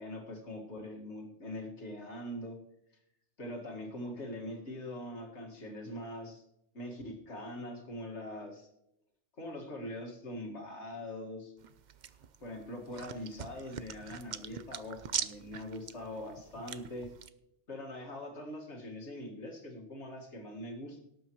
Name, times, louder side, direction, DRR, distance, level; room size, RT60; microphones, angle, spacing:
voice 1, 0.0-2.6 3.4-6.4 6.7-8.7 9.4-11.5 12.4-17.1 17.7-21.0, left 1 dB, 70° left, 1 dB, 2.3 m, -42 dB
sound 1, 11.6-17.3, right 8 dB, 50° right, 0.6 m, -42 dB
18.0 x 8.5 x 3.1 m, 0.82 s
omnidirectional pair, 1.2 m